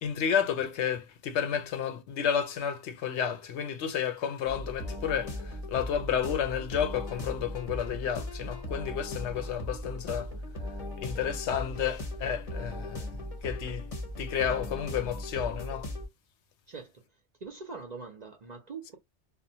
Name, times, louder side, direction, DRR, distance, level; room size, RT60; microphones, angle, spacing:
voice 1, 0.0-10.3 11.0-13.2 13.4-13.9 14.2-15.9, left 8 dB, 70° left, 0.8 m, -31 dB
sound 1, 4.4-16.1, left 1 dB, 35° left, 0.7 m, -38 dB
voice 2, 17.4-19.0, right 4 dB, 50° right, 0.5 m, -42 dB
2.5 x 2.1 x 2.6 m
omnidirectional pair, 1.2 m